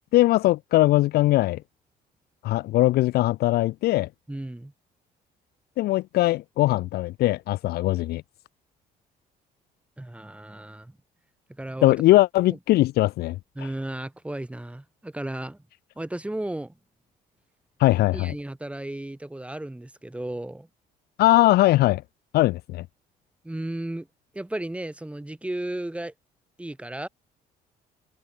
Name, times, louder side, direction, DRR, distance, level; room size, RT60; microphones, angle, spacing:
voice 1, 0.1-1.6 2.4-4.1 5.8-8.2 11.8-13.4 17.8-18.3 21.2-22.0 22.3-22.8, left 17 dB, 70° left, 0.5 m, -20 dB
voice 2, 4.3-4.7 10.0-10.9 11.6-11.9 12.5-12.6 13.6-15.6 16.0-16.7 18.1-20.7 23.4-24.1 24.3-26.1 26.6-27.1, right 1 dB, 5° right, 4.3 m, -34 dB
cardioid pair, 110°, 17 cm